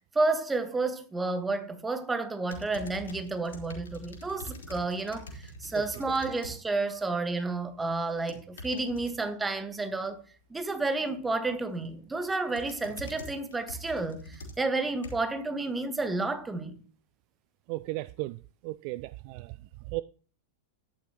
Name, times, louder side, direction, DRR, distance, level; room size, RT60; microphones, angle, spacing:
voice 1, 0.1-10.2 10.5-16.8, right 3 dB, 10° right, 1.5 m, -31 dB
sound 1, 2.5-6.6 7.0-7.3 8.1-9.1 11.5-11.9 12.2-15.4 16.0-16.1, equal, 65° left, 3.2 m, -44 dB
voice 2, 17.7-18.4 18.6-19.5 19.9-20.0, right 19 dB, 45° right, 0.4 m, -35 dB
13.0 x 10.5 x 3.0 m
figure-of-eight pair, 90°, 0 cm